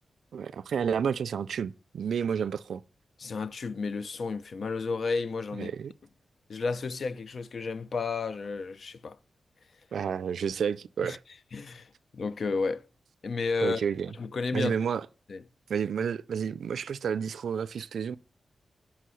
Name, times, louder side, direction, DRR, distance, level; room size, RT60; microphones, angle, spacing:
voice 1, 0.3-2.8 5.6-5.9 9.9-11.2 13.6-14.1 14.5-15.1 15.7-18.2, right 7 dB, 85° right, 0.4 m, -30 dB
voice 2, 3.2-5.7 6.5-9.2 11.0-11.2 11.5-12.8 13.2-13.8 14.2-14.8 15.3-15.4, left 4 dB, 60° left, 0.5 m, -32 dB
5.8 x 5.6 x 6.3 m
wide cardioid pair, 100°, 0 cm